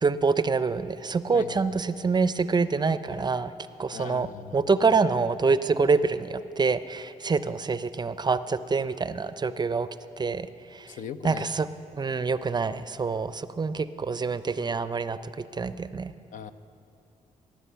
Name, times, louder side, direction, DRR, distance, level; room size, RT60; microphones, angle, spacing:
voice 1, 0.0-3.5 3.8-4.3 4.5-9.9 10.2-10.5 10.8-10.9 11.2-11.7 12.0-15.2 15.6-16.1, right 4 dB, 30° right, 14 dB, 0.5 m, -26 dB
voice 2, 1.3-1.8 3.9-4.8 10.9-11.5 16.3-16.5, left 8 dB, 65° left, 12 dB, 0.6 m, -40 dB
18.0 x 8.3 x 5.7 m, 2.6 s
supercardioid pair, 65°, 15 cm